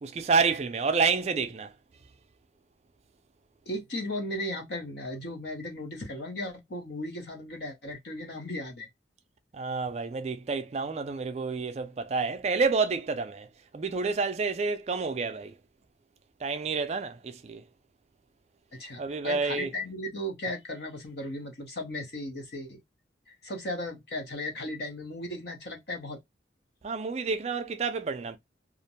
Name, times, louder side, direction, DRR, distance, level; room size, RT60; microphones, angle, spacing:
voice 1, 0.0-1.7 9.5-13.5 13.7-15.5 16.4-17.6 19.0-19.7 26.8-28.4, right 4 dB, 35° right, 0.3 m, -29 dB
voice 2, 3.7-8.9 18.8-22.8 23.3-26.2, left 1 dB, 60° left, 0.8 m, -36 dB
2.4 x 2.1 x 2.8 m
head